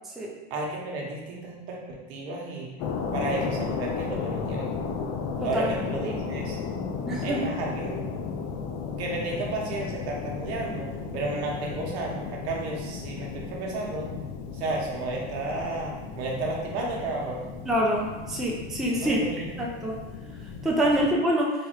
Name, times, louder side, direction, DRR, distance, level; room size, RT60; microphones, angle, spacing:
voice 1, 0.5-2.7 3.1-4.7 5.4-6.6 7.2-8.1 9.0-14.1 14.5-17.5 19.0-19.6 21.0-21.1, right 2 dB, 85° right, -2 dB, 1.0 m, -32 dB
sound 1, 2.8-21.1, left 5 dB, 55° left, 0.5 m, -34 dB
voice 2, 5.4-5.7 7.1-7.4 17.7-19.2 19.6-20.0 20.6-21.5, equal, ahead, -2 dB, 0.4 m, -25 dB
3.4 x 2.3 x 4.4 m, 1.2 s
supercardioid pair, 130°, 31 cm